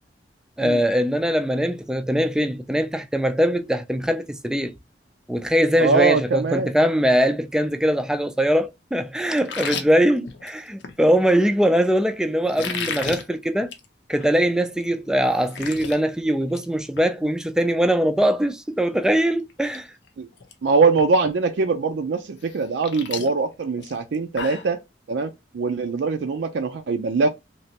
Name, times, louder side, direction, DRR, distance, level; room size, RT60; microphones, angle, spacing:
voice 1, 0.6-4.7 5.3-13.7 14.1-19.9, equal, 5° right, 0.3 m, -21 dB
voice 2, 5.8-6.7 20.2-20.3 20.6-24.8 25.1-27.3, right 4 dB, 75° right, 0.4 m, -22 dB
sound 1, 9.4-11.0 12.5-13.2 13.6-13.9 14.2-14.3 14.8-14.9 15.2-16.0 16.3-16.7 17.0-17.1 18.9-19.0 19.5-19.8 20.1-20.5 21.0-21.1 22.4-24.7, left 6 dB, 85° left, 0.6 m, -33 dB
3.2 x 2.9 x 2.8 m
head